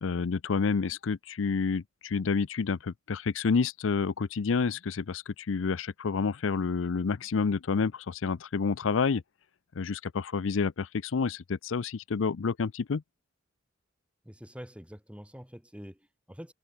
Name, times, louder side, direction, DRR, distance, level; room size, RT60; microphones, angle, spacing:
voice 1, 0.0-9.2 9.8-13.0, left 5 dB, 75° left, 0.5 m, -29 dB
voice 2, 14.2-16.5, equal, 5° right, 4.8 m, -46 dB
head